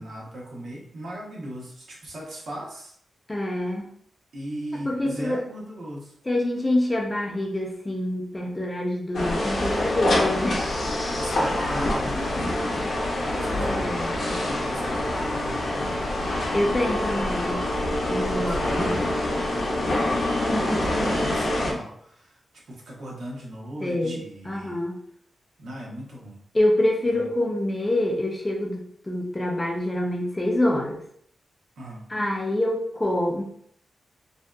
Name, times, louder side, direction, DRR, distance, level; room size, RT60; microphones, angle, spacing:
voice 1, 0.0-2.9 4.3-6.1 11.1-12.5 13.1-16.0 18.3-19.1 20.0-20.4 20.8-22.4 22.7-24.8 25.6-26.4 27.0-27.3 31.8-32.0, right 1 dB, 75° right, -3 dB, 0.7 m, -38 dB
voice 2, 3.3-3.9 4.9-5.4 6.3-10.7 12.2-12.3 13.4-14.4 16.5-17.7 18.1-18.6 23.8-24.2 24.5-25.0 26.5-31.0 32.1-33.4, left 1 dB, 15° left, 0 dB, 0.4 m, -26 dB
sound 1, 9.1-21.7, left 1 dB, 65° left, 0.6 m, -26 dB
2.6 x 2.2 x 2.2 m, 0.65 s
wide cardioid pair, 175°, 0 cm